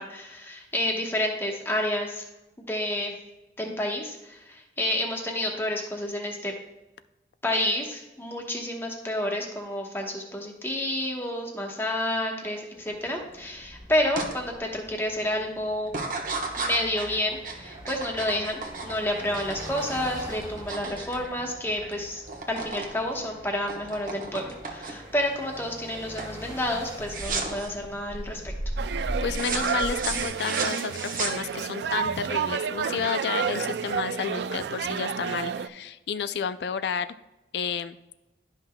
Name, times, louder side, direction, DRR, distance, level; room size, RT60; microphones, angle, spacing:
voice 1, 0.0-2.2 2.6-3.1 3.6-6.5 7.4-15.9 16.6-28.5, left 1 dB, 15° left, 1 dB, 1.0 m, -30 dB
sound 1, 12.7-30.3, right 1 dB, 25° right, 2.0 m, -40 dB
sound 2, 14.2-14.3 14.8-15.2 15.9-21.9 22.2-22.9 23.2-25.2 25.6-25.9 26.2-26.4 27.1-27.7 29.3-31.8, right 4 dB, 50° right, 1.1 m, -34 dB
sound 3, 28.8-35.7, right 6 dB, 75° right, 0.3 m, -30 dB
voice 2, 29.2-37.1 37.5-38.0, left 7 dB, 75° left, 13 dB, 0.3 m, -31 dB
11.5 x 5.7 x 2.2 m, 1.0 s
head